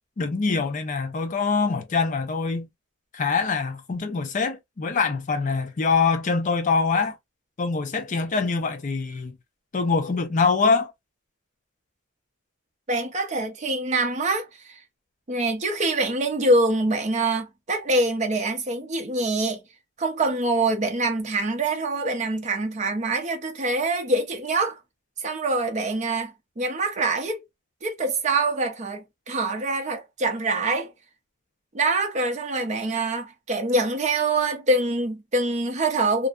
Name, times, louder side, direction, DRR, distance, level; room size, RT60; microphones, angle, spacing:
voice 1, 0.2-2.7 3.1-7.2 7.6-9.4 9.7-10.9, left 4 dB, 35° left, 0.4 m, -24 dB
voice 2, 12.9-14.8 15.3-19.6 20.0-24.8 25.2-27.4 27.8-30.9 31.7-36.3, right 2 dB, 35° right, 0.6 m, -25 dB
2.5 x 2.1 x 2.3 m
head